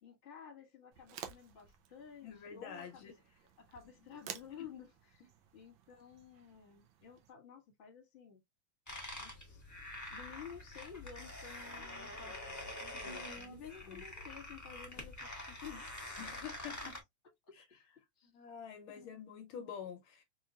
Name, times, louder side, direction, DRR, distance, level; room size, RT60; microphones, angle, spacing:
voice 1, 0.0-3.0 3.6-8.4 9.2-9.6 10.0-15.9 16.3-16.4 17.5-17.9 18.2-18.3 18.9-19.1, left 8 dB, 35° left, 1.5 m, -53 dB
sound 1, 0.9-7.3, right 9 dB, 75° right, 1.4 m, -53 dB
voice 2, 2.2-3.1 4.6-4.7 13.0-13.6 13.9-14.0 16.2-17.0 17.5-17.6 18.2-20.2, left 7 dB, 75° left, 1.4 m, -47 dB
sound 2, 8.9-17.0, left 1 dB, 10° left, 0.8 m, -46 dB
4.5 x 3.1 x 2.3 m
omnidirectional pair, 2.3 m